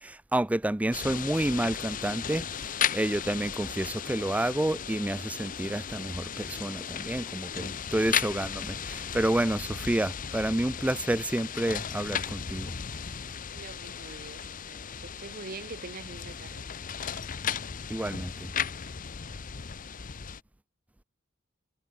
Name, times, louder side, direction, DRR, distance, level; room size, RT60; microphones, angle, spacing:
voice 1, 0.0-12.7 17.9-18.5, right 1 dB, 5° right, 0.3 m, -29 dB
sound 1, 0.9-20.4, left 8 dB, 40° left, 0.7 m, -35 dB
voice 2, 13.5-16.6, right 3 dB, 45° right, 1.1 m, -44 dB
head